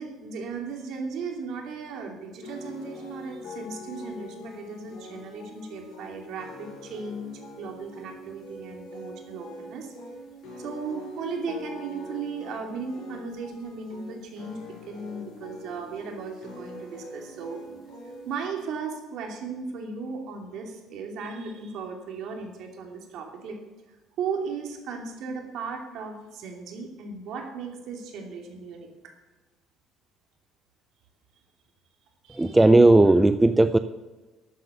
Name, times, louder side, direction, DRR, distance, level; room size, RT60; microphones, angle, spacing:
voice 1, 0.0-9.9 10.6-17.6 18.2-23.6 24.2-29.1 32.2-32.6, right 5 dB, 60° right, 3 dB, 2.7 m, -36 dB
sound 1, 2.4-18.4, left 2 dB, 55° left, 5.3 m, -43 dB
voice 2, 32.3-33.8, right 2 dB, 5° right, 11 dB, 0.4 m, -16 dB
13.0 x 8.3 x 6.8 m, 1.2 s
cardioid pair, 175°, 0 cm